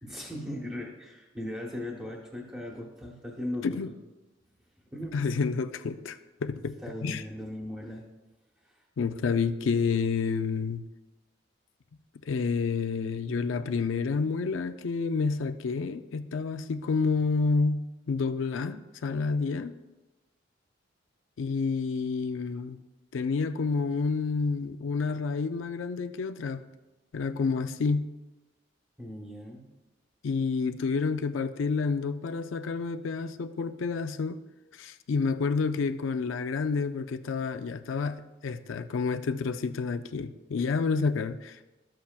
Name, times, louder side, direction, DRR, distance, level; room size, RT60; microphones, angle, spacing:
voice 1, 0.0-3.9 4.9-5.2 6.8-8.1 8.6-8.8 29.0-29.7, left 1 dB, 10° right, 1.0 m, -38 dB
voice 2, 5.1-7.2 9.0-10.9 12.3-19.7 21.4-22.8 23.1-26.6 27.1-28.1 30.2-34.4 34.8-41.6, left 4 dB, 90° left, 0.4 m, -29 dB
13.0 x 7.6 x 2.3 m
head